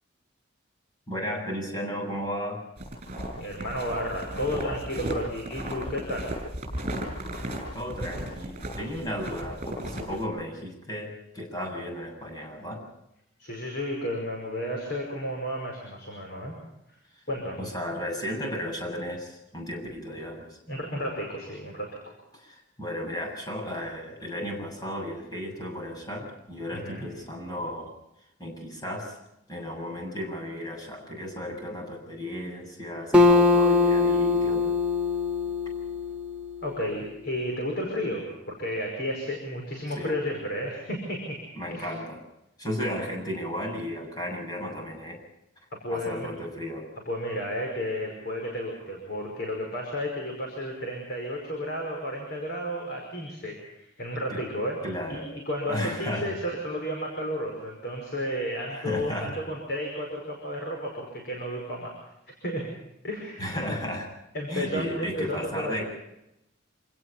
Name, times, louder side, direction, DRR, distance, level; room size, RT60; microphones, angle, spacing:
voice 1, 1.1-2.7 7.7-12.9 17.6-20.6 22.3-27.9 28.4-29.2 29.5-34.7 40.0-40.1 41.6-42.2 42.6-45.2 45.9-46.9 54.3-54.5 54.8-55.3 55.7-56.3 58.7-59.4 63.4-64.1 64.5-65.9, equal, 20° left, 1 dB, 7.2 m, -34 dB
sound 1, 2.8-10.2, right 1 dB, 35° right, 6.6 m, -35 dB
voice 2, 3.4-6.3 13.4-16.5 17.3-17.6 20.7-21.9 26.7-27.1 36.6-41.4 41.7-41.9 45.7-46.3 47.1-54.8 55.1-55.2 55.5-61.9 62.4-62.7 63.0-63.8 64.3-65.8, equal, 55° left, 0 dB, 5.6 m, -32 dB
Acoustic guitar, 33.1-36.7, left 3 dB, 5° right, 1.5 m, -22 dB
27.5 x 18.0 x 5.7 m, 0.86 s
head